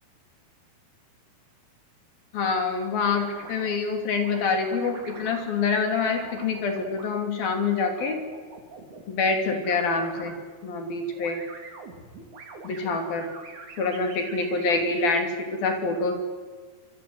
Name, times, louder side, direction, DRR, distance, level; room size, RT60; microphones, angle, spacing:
voice 1, 2.3-8.2 9.1-10.3 10.6-11.4 12.6-13.3 13.8-16.1, left 4 dB, 70° left, 5 dB, 4.9 m, -26 dB
sound 1, 2.4-2.5 3.2-3.7 4.2-5.4 5.9-7.1 7.8-9.0 9.6-10.4 11.1-14.9, right 4 dB, 50° right, 4.9 m, -44 dB
26.0 x 24.0 x 8.1 m, 1.5 s
omnidirectional pair, 4.5 m